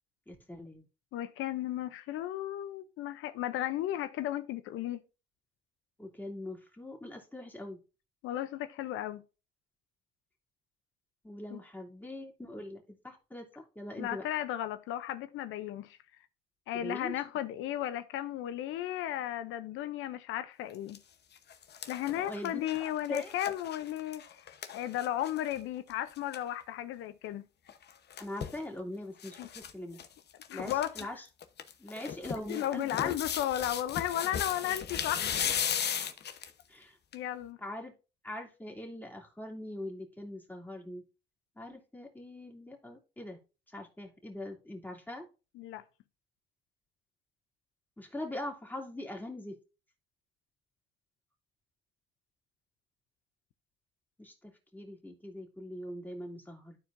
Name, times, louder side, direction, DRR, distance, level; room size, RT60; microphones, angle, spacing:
voice 1, 0.3-0.9 6.0-7.8 11.2-14.3 16.7-17.2 22.1-22.6 23.1-23.3 28.2-30.0 30.5-31.3 31.8-33.1 34.7-34.8 36.7-37.0 37.6-37.9 38.2-41.0 41.6-43.4 43.7-45.2 48.0-49.6 54.2-56.8, left 1 dB, 10° left, 2.5 m, -42 dB
voice 2, 1.1-5.0 8.2-9.2 11.5-11.6 14.0-16.0 16.7-21.0 21.9-24.4 24.7-27.4 29.4-29.5 30.5-31.1 32.5-35.4 37.1-37.6 45.6-45.8, left 12 dB, 90° left, 0.6 m, -34 dB
sound 1, 20.7-21.0 21.4-25.6 25.9-26.0 26.2-26.4 27.7-28.6 29.2-29.7 30.0-30.1 30.4-31.0 31.4-36.6 37.1-37.2, left 8 dB, 55° left, 0.9 m, -36 dB
12.5 x 4.6 x 2.5 m
cardioid pair, 90°, 20 cm